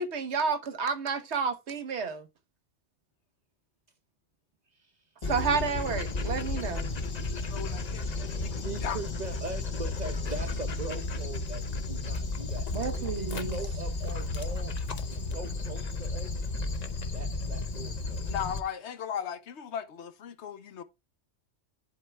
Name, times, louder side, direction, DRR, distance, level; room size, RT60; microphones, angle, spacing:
voice 1, 0.0-2.3 5.3-6.9 12.7-13.6, right 5 dB, 65° right, 1.2 m, -30 dB
Dog, 5.2-18.6, left 3 dB, 40° left, 0.8 m, -33 dB
voice 2, 7.3-9.0 18.3-20.8, left 8 dB, 70° left, 1.0 m, -37 dB
voice 3, 8.6-11.6 11.9-14.7 15.1-16.3 17.1-18.3, right 3 dB, 40° right, 0.8 m, -41 dB
10.5 x 4.4 x 3.3 m
omnidirectional pair, 1.2 m